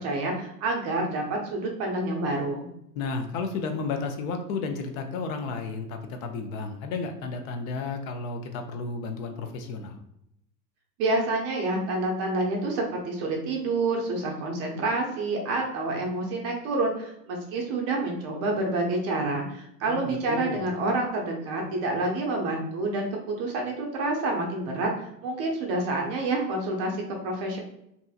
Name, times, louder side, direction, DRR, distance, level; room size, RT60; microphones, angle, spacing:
voice 1, 0.0-2.7 11.0-23.1 23.4-27.0 27.2-27.6, right 2 dB, 30° right, 0 dB, 0.5 m, -28 dB
voice 2, 2.9-10.0 19.9-20.6, left 4 dB, 55° left, 5 dB, 0.5 m, -32 dB
2.7 x 2.6 x 2.3 m, 0.78 s
hypercardioid pair, 115°, 50 cm